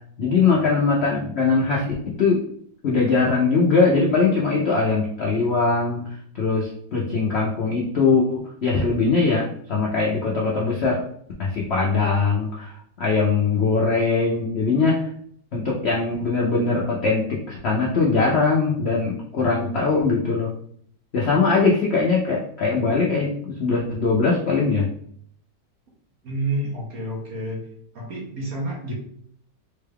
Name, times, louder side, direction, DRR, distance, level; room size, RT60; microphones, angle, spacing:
voice 1, 0.2-2.4 2.8-6.0 6.3-11.0 11.4-12.7 13.0-15.1 15.5-20.5 21.1-24.9, left 4 dB, 80° left, -3 dB, 0.5 m, -21 dB
voice 2, 26.2-27.6 27.9-28.9, right 2 dB, 55° right, -2 dB, 1.3 m, -29 dB
3.9 x 2.2 x 3.3 m, 0.64 s
omnidirectional pair, 2.0 m